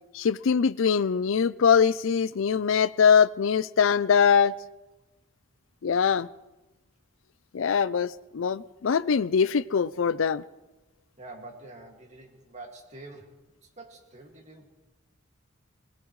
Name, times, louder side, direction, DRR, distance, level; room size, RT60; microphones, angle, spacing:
voice 1, 0.1-4.5 5.8-6.3 7.5-10.4, left 6 dB, 80° left, 0.5 m, -22 dB
voice 2, 11.2-13.4 13.8-14.7, right 2 dB, 35° right, 2.2 m, -46 dB
21.5 x 21.0 x 3.2 m
head